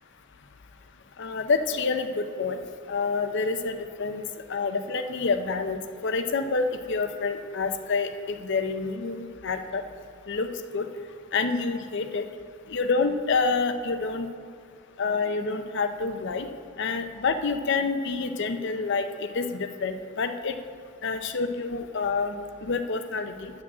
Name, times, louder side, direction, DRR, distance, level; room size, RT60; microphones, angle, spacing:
voice 1, 1.2-2.6 2.9-4.2 4.5-9.8 10.3-10.9 11.3-12.2 12.7-14.3 15.0-16.5 16.8-20.5 21.0-23.5, left 4 dB, 60° left, 8 dB, 0.6 m, -28 dB
7.4 x 6.1 x 7.4 m, 2.3 s
head